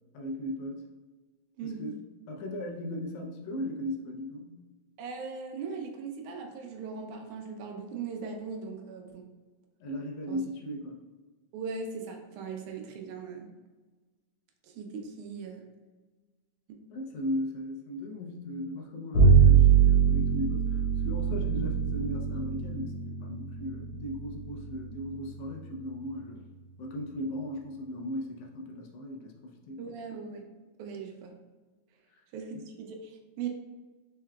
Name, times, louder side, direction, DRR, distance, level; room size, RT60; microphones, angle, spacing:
voice 1, 0.1-0.8 1.6-1.9 2.3-4.5 9.8-11.0 16.9-26.5 26.8-29.8 32.5-32.6, left 1 dB, 80° left, 1 dB, 2.1 m, -37 dB
voice 2, 1.6-1.9 5.0-9.3 10.3-10.4 11.5-13.5 14.6-15.6 16.7-16.8 29.8-30.5 30.8-31.3 32.3-33.5, right 5 dB, 85° right, 3 dB, 2.1 m, -39 dB
Bowed string instrument, 19.1-25.6, right 7 dB, 55° left, 1.7 m, -24 dB
4.8 x 4.6 x 2.2 m, 1.3 s
omnidirectional pair, 3.4 m